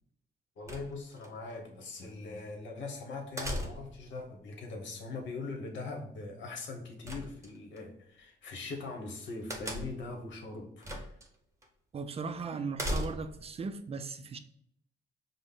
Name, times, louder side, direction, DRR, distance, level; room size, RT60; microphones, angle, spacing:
voice 1, 0.6-11.1, left 3 dB, 70° left, 1.1 m, -41 dB
sound 1, 0.7-1.3 3.4-4.1 7.0-7.8 9.5-10.1 10.8-11.3 11.6-11.7 12.7-13.5, equal, 15° right, 0.9 m, -37 dB
voice 2, 11.9-14.4, right 4 dB, 30° right, 0.4 m, -37 dB
5.1 x 2.1 x 3.8 m
cardioid pair, 90°, 20 cm